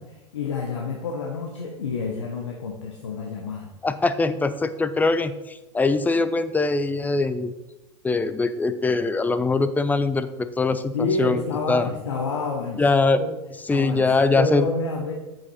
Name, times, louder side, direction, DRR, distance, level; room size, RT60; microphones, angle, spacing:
voice 1, 0.0-3.7 10.9-13.3 13.7-15.1, left 4 dB, 75° left, 1 dB, 1.2 m, -29 dB
voice 2, 3.8-7.5 8.0-11.4 11.7-11.9 12.8-13.2 13.7-14.7, left 3 dB, 10° left, 12 dB, 0.5 m, -22 dB
8.3 x 7.2 x 4.2 m, 1.0 s
figure-of-eight pair, 90°, 15 cm